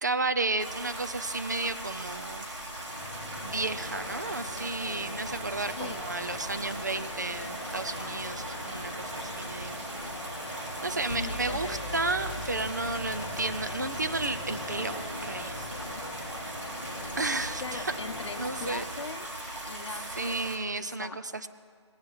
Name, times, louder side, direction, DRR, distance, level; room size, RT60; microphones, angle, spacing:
voice 1, 0.0-2.6 3.4-9.9 10.3-14.9 15.2-15.8 16.4-16.8 17.2-17.9 18.4-18.8 20.2-21.5, right 3 dB, 40° right, 11 dB, 0.4 m, -33 dB
sound 1, 0.6-20.6, right 1 dB, 85° right, 3.4 m, -40 dB
sound 2, 2.7-18.9, left 1 dB, ahead, 0.7 m, -41 dB
sound 3, 3.0-5.0 11.1-16.9, left 1 dB, 40° left, 2.3 m, -43 dB
voice 2, 11.2-11.8 15.9-16.0 17.6-19.3 19.6-21.2, left 4 dB, 70° left, 6 dB, 0.8 m, -41 dB
18.0 x 8.7 x 3.1 m, 2.2 s
hypercardioid pair, 175°, 15 cm